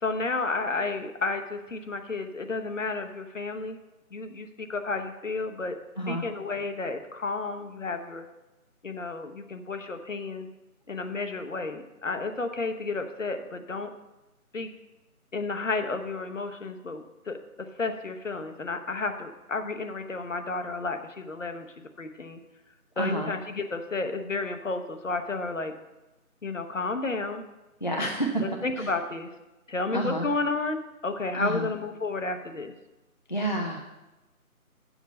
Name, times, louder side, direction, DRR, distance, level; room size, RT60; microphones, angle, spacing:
voice 1, 0.0-3.8 4.1-5.8 6.1-8.2 8.8-10.5 10.9-13.9 14.5-14.7 15.3-17.4 17.8-22.4 23.0-25.7 26.4-27.4 28.4-29.3 29.7-32.7, left 3 dB, 55° left, 7 dB, 1.0 m, -32 dB
voice 2, 23.0-23.3 27.8-28.4 28.8-28.9 29.9-30.3 31.4-31.7 33.3-33.8, right 1 dB, 35° left, 0 dB, 0.5 m, -29 dB
7.9 x 7.3 x 5.2 m, 1.0 s
figure-of-eight pair, 160°, 44 cm